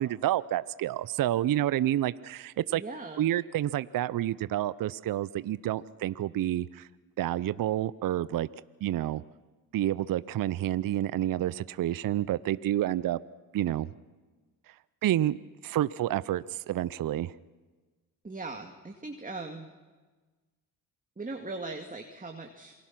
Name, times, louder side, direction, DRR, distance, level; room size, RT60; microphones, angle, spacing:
voice 1, 0.0-2.8 3.2-6.9 7.2-8.5 8.8-9.2 9.7-13.2 13.5-13.9 14.7-14.8 15.0-15.4 15.6-17.3, right 13 dB, 50° right, 18 dB, 0.6 m, -29 dB
voice 2, 2.7-3.2 18.2-19.7 21.2-22.7, right 3 dB, 20° right, 3 dB, 2.1 m, -39 dB
27.5 x 19.5 x 6.0 m, 1.3 s
supercardioid pair, 60°, 43 cm